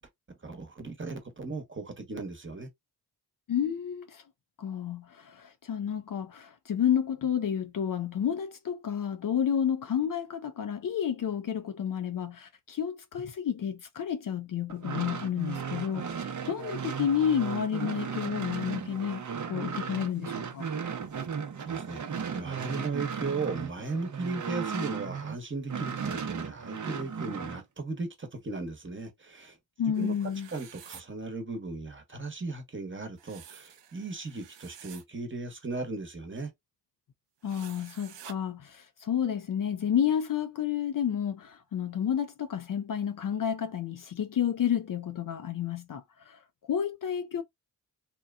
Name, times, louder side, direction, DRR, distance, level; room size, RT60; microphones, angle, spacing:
voice 1, 0.4-2.7 21.6-22.0 22.3-29.6 29.8-30.2 30.5-36.5, right 3 dB, 30° right, 1.0 m, -37 dB
voice 2, 3.5-4.2 4.6-19.2 19.5-20.7 29.8-30.5 37.4-46.4 46.7-47.4, left 9 dB, 50° left, 0.5 m, -30 dB
sound 1, 14.7-25.4 25.7-27.6, right 6 dB, 45° right, 0.6 m, -36 dB
sound 2, 29.9-31.0 33.2-35.0 37.4-38.3, right 9 dB, 85° right, 0.6 m, -50 dB
2.8 x 2.2 x 2.4 m
cardioid pair, 45°, 41 cm